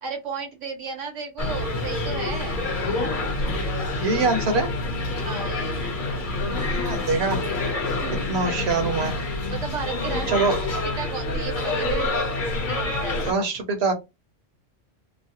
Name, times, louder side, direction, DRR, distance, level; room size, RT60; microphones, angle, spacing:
voice 1, 0.0-2.6 5.2-6.2 8.0-8.3 9.5-10.3 10.8-12.2 12.7-13.3, right 5 dB, 75° right, 1 dB, 1.4 m, -34 dB
sound 1, 1.4-13.3, left 2 dB, 45° left, 1.0 m, -27 dB
voice 2, 4.0-4.7 6.5-7.4 8.3-9.1 10.3-10.6 13.3-13.9, right 4 dB, 60° right, 4 dB, 1.1 m, -24 dB
3.1 x 2.0 x 2.8 m, 0.23 s
omnidirectional pair, 1.3 m